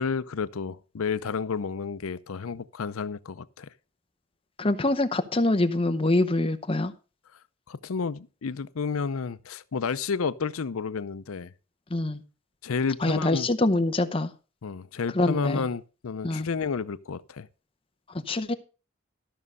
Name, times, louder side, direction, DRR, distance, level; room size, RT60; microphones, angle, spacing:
voice 1, 0.0-3.7 7.7-11.5 12.6-13.5 14.6-17.5, left 5 dB, 80° left, 0.6 m, -31 dB
voice 2, 4.6-6.9 11.9-12.2 13.0-14.3 15.1-15.7 16.2-16.5 18.3-18.5, left 2 dB, 25° left, 0.7 m, -24 dB
13.0 x 6.3 x 5.4 m
head